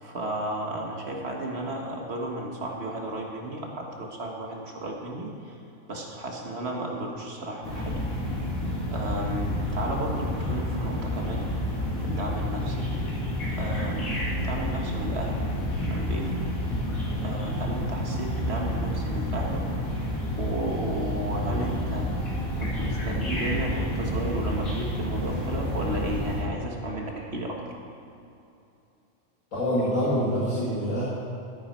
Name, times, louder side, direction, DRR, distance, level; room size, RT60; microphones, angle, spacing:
voice 1, 0.0-5.6 5.9-8.0 8.9-11.5 12.0-12.9 13.6-14.2 14.4-15.4 15.8-16.3 17.2-19.6 20.4-22.2 22.6-27.6, right 1 dB, 50° right, 0 dB, 1.7 m, -33 dB
sound 1, 7.6-26.4, left 1 dB, 90° left, 2.9 m, -29 dB
voice 2, 29.5-31.0, equal, 70° left, -9 dB, 2.7 m, -25 dB
13.5 x 9.8 x 4.4 m, 2.8 s
omnidirectional pair, 1.4 m